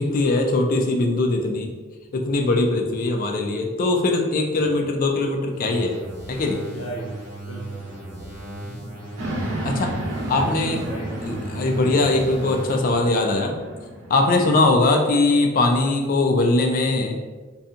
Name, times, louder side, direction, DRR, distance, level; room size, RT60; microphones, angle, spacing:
voice 1, 0.0-1.7 2.1-6.0 6.3-6.6 9.6-9.9 10.3-10.8 11.2-13.6 14.1-17.2, left 2 dB, 45° left, 3 dB, 0.3 m, -21 dB
sound 1, 5.5-12.9, right 2 dB, 40° right, 0.8 m, -37 dB
voice 2, 6.7-9.0 10.4-11.1 14.4-14.5, right 1 dB, 85° left, -4 dB, 0.8 m, -38 dB
sound 2, 9.2-14.6, right 1 dB, 85° right, 0.6 m, -32 dB
2.7 x 2.2 x 2.4 m, 1.3 s
head